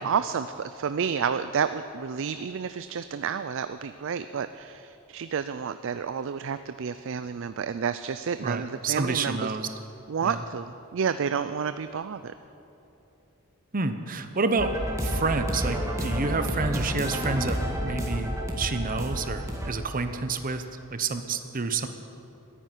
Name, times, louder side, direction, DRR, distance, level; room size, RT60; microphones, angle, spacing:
voice 1, 0.0-9.5 10.1-12.3, right 6 dB, 60° right, 11 dB, 0.4 m, -30 dB
voice 2, 8.4-9.7 10.2-10.4 13.7-14.7 15.0-20.6 20.9-21.9, right 4 dB, 40° right, 8 dB, 0.9 m, -29 dB
sound 1, 14.6-19.7, equal, 15° right, 2.0 m, -30 dB
14.0 x 10.0 x 9.6 m, 2.9 s
head